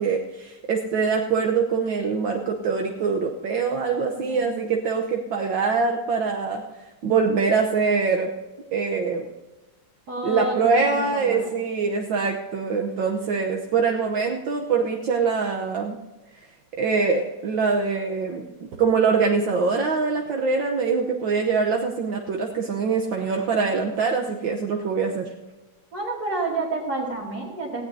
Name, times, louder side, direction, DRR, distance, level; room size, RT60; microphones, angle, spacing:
voice 1, 0.0-6.6 7.0-8.3 8.7-9.3 10.2-16.0 16.7-18.4 18.8-25.3, right 5 dB, 65° right, 1 dB, 1.6 m, -23 dB
voice 2, 4.2-4.7 10.1-11.5 25.9-27.9, right 2 dB, 45° right, -6 dB, 2.8 m, -30 dB
18.5 x 15.5 x 2.7 m, 1.1 s
omnidirectional pair, 2.4 m